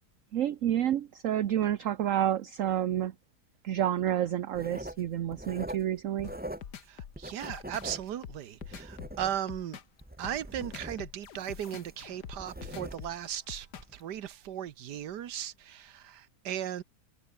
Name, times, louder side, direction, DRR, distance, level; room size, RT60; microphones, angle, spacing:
voice 1, 0.3-3.1 3.6-6.3, right 11 dB, 60° right, 1.1 m, -29 dB
Writing, 4.5-6.9 7.1-9.6 10.0-13.3 13.7-13.9, right 1 dB, 5° right, 1.4 m, -43 dB
sound 1, 6.2-14.0, left 9 dB, 85° left, 1.9 m, -45 dB
voice 2, 6.9-9.8 10.2-13.7 13.9-16.8, right 10 dB, 85° right, 1.6 m, -37 dB
omnidirectional pair, 1.7 m